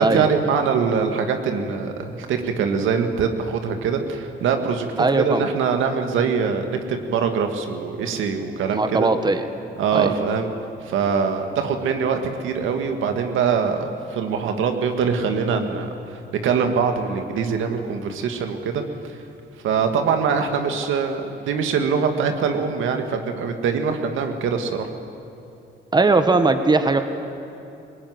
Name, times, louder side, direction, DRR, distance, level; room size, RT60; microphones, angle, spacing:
voice 1, 0.0-9.1 9.8-10.5 10.9-18.8 19.1-19.2 19.6-24.9, right 6 dB, 85° right, 5 dB, 2.0 m, -23 dB
voice 2, 5.0-5.4 8.7-9.4 9.9-10.1 25.9-27.0, right 3 dB, 20° right, 8 dB, 1.5 m, -19 dB
20.5 x 18.5 x 9.7 m, 2.7 s
cardioid pair, 90°, 20 cm